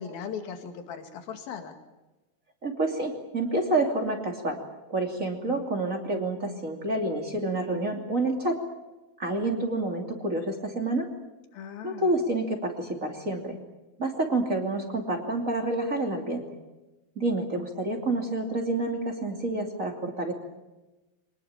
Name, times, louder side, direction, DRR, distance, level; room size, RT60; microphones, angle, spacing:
voice 1, 0.0-1.8 11.5-12.1, left 7 dB, 75° left, 6 dB, 4.0 m, -38 dB
voice 2, 2.6-4.6 4.9-8.6 9.2-11.1 11.8-13.6 14.0-16.6 17.2-20.3, right 2 dB, 25° right, 3 dB, 2.7 m, -28 dB
24.5 x 20.0 x 8.9 m, 1.1 s
omnidirectional pair, 4.3 m